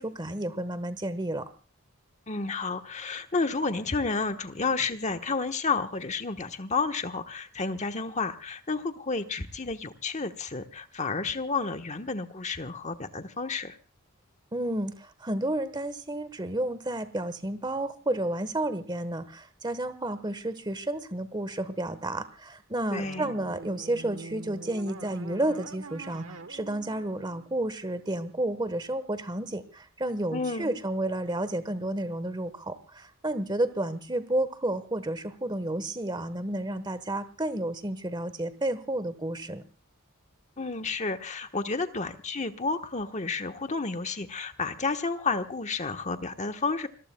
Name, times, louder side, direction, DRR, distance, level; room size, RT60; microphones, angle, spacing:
voice 1, 0.0-1.5 14.5-39.6, right 1 dB, 20° right, 13 dB, 1.2 m, -31 dB
voice 2, 2.3-13.8 22.9-23.3 30.3-30.7 40.6-46.9, left 4 dB, 30° left, 7 dB, 1.2 m, -31 dB
sound 1, 23.0-28.1, right 3 dB, 70° right, 1.1 m, -44 dB
28.5 x 21.5 x 2.3 m, 0.34 s
head